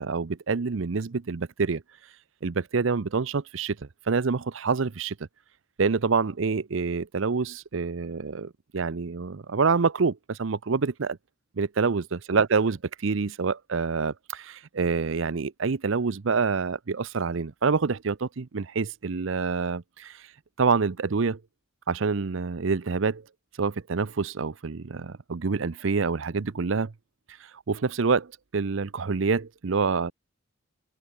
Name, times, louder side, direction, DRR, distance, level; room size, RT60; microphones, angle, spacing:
voice 1, 0.0-1.8 2.4-5.2 5.8-11.2 11.6-20.3 20.6-21.4 21.9-23.2 23.6-26.9 27.4-30.1, right 4 dB, 65° right, 0.6 m, -27 dB
head